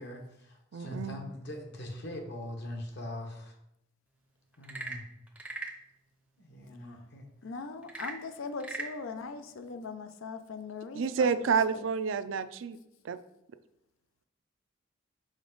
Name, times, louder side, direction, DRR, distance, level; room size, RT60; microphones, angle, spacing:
voice 1, 0.0-3.5 4.6-5.0 6.4-7.2, left 1 dB, 60° left, 3 dB, 1.1 m, -41 dB
voice 2, 0.7-1.2 10.9-12.8 13.0-13.2, right 5 dB, 70° right, 12 dB, 0.4 m, -29 dB
Frog / Percussion / Wood, 4.5-5.8 7.8-9.0, right 2 dB, 5° right, 0.6 m, -39 dB
voice 3, 7.4-11.9, left 4 dB, 85° left, 8 dB, 0.5 m, -40 dB
5.1 x 4.9 x 3.8 m, 0.83 s
head